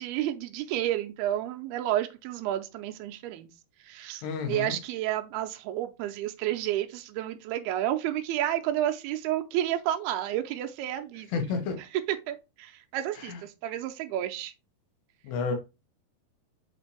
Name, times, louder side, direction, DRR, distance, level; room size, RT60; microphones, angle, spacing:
voice 1, 0.0-3.5 3.8-11.6 11.9-14.5, right 12 dB, 85° right, 2.5 m, -31 dB
voice 2, 4.2-4.8 11.3-11.8 13.2-13.4 15.2-15.6, left 5 dB, 85° left, 3.4 m, -30 dB
8.1 x 4.2 x 3.3 m
omnidirectional pair, 4.6 m